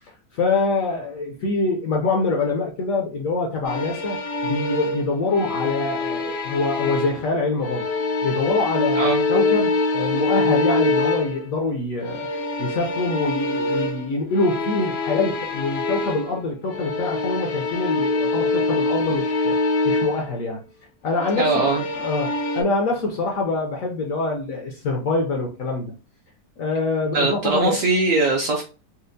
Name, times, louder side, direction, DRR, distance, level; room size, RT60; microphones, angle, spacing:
voice 1, 0.3-4.2 4.4-7.9 8.2-12.3 12.6-19.6 19.8-20.6 21.0-21.5 21.9-25.9 26.6-27.8, left 3 dB, 65° left, 0.9 m, -25 dB
sound 1, 3.6-7.3 7.6-11.5 12.0-16.4 16.7-20.3 21.1-22.6, left 2 dB, 85° left, 0.5 m, -25 dB
voice 2, 21.3-21.8 27.1-28.6, right 3 dB, 65° right, 0.8 m, -21 dB
4.3 x 2.1 x 2.6 m
omnidirectional pair, 1.9 m